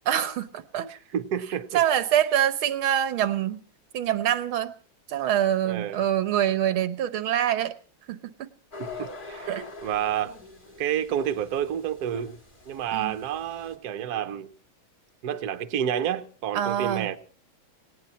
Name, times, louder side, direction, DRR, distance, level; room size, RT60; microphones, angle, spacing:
voice 1, 0.1-0.9 1.7-3.6 3.9-4.7 5.1-7.7 8.1-8.5 9.5-9.7 12.9-13.2 16.6-17.1, right 11 dB, 85° right, 1.9 m, -25 dB
voice 2, 0.9-1.8 5.6-6.0 8.8-9.5 9.8-10.3 10.8-12.4 12.7-14.5 15.2-17.2, right 9 dB, 55° right, 1.4 m, -29 dB
sound 1, 8.7-13.8, left 3 dB, 25° left, 2.3 m, -44 dB
18.5 x 18.5 x 4.2 m
omnidirectional pair, 2.3 m